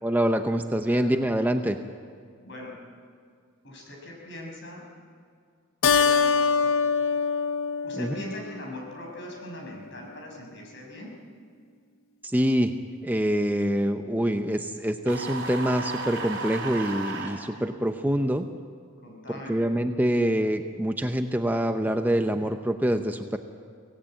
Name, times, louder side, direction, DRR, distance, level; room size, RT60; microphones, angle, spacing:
voice 1, 0.0-1.8 7.9-8.1 12.2-12.7 13.0-18.5 19.5-23.4, equal, 10° right, 6 dB, 0.7 m, -25 dB
voice 2, 2.4-2.8 3.6-4.9 5.8-6.3 6.6-6.9 7.8-11.1 19.0-19.6, left 1 dB, 60° left, 0 dB, 6.1 m, -41 dB
Keyboard (musical), 5.8-8.7, left 5 dB, 75° left, 0.7 m, -24 dB
sound 1, 15.1-17.4, right 3 dB, 60° right, 4.3 m, -34 dB
24.0 x 18.0 x 8.8 m, 2.1 s
head